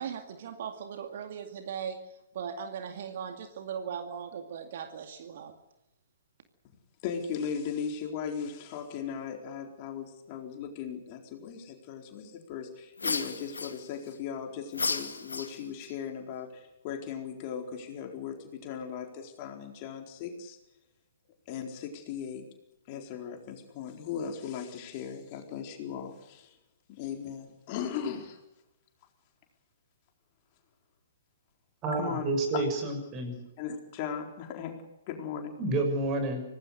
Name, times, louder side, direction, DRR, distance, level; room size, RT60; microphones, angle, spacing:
voice 1, 0.0-2.0 2.3-5.6, right 7 dB, 50° right, 7 dB, 2.2 m, -38 dB
voice 2, 7.0-20.6 21.5-22.4 22.9-26.6 27.0-28.4 32.0-32.6 33.6-34.8 35.1-35.6, left 7 dB, 35° left, 3 dB, 4.2 m, -37 dB
sound 1, 13.0-14.1 14.7-15.9, left 4 dB, 75° left, 2.3 m, -33 dB
voice 3, 31.8-33.4 35.6-36.4, right 2 dB, 25° right, 6 dB, 6.6 m, -29 dB
25.5 x 18.5 x 6.6 m, 0.94 s
figure-of-eight pair, 120°, 0 cm